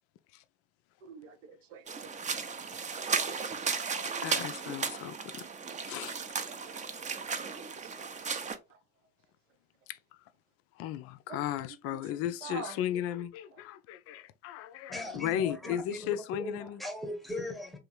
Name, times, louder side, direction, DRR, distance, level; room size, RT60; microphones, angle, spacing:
voice 1, 1.0-2.2 7.4-7.6 7.8-8.0 8.5-8.6 11.3-11.4 11.9-12.0 12.4-12.7, right 6 dB, 70° right, 0.8 m, -45 dB
sound 1, 1.9-8.6, right 5 dB, 20° right, 0.5 m, -35 dB
voice 2, 3.9-5.5 5.9-6.2 9.9-10.0 10.8-16.8, left 11 dB, 40° left, 0.4 m, -35 dB
voice 3, 14.9-17.8, left 1 dB, ahead, 1.0 m, -39 dB
3.3 x 3.2 x 3.2 m
figure-of-eight pair, 60°, 39 cm